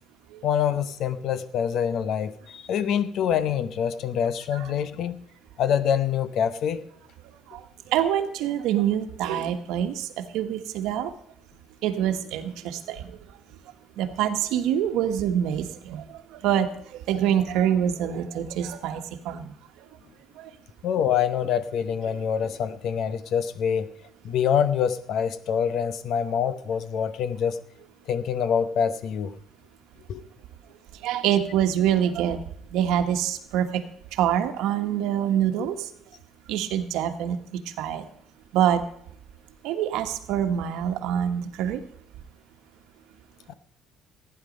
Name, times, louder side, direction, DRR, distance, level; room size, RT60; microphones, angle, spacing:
voice 1, 0.4-5.2 5.6-6.8 20.8-23.9 24.2-27.6 28.1-29.3 30.1-30.2 43.5-43.6, left 8 dB, 50° left, 14 dB, 0.7 m, -25 dB
voice 2, 7.9-11.1 11.8-13.0 14.0-16.0 16.4-19.5 20.4-20.5 31.0-32.4 32.7-33.8 34.2-35.9 36.5-37.4 37.8-38.0 38.5-38.8 39.6-41.8, right 10 dB, 85° right, 6 dB, 1.3 m, -25 dB
15.0 x 9.8 x 5.3 m, 0.67 s
cardioid pair, 175°, 0 cm